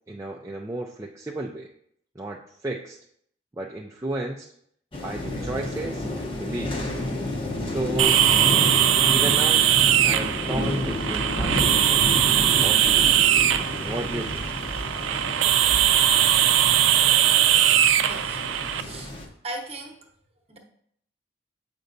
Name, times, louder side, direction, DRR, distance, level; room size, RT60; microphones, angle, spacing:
voice 1, 0.1-1.7 2.2-3.0 3.6-4.5 5.0-6.9 7.6-8.2 9.1-9.7 10.0-13.0 13.8-14.5, right 1 dB, 15° right, -1 dB, 0.3 m, -33 dB
sound 1, 4.9-19.3, left 1 dB, 25° left, 0.7 m, -30 dB
sound 2, 8.0-18.8, right 11 dB, 85° right, 0.4 m, -20 dB
voice 2, 18.0-18.4 18.8-20.0 20.5-20.6, right 1 dB, 30° right, 1 dB, 0.9 m, -38 dB
7.8 x 5.2 x 2.6 m, 0.69 s
head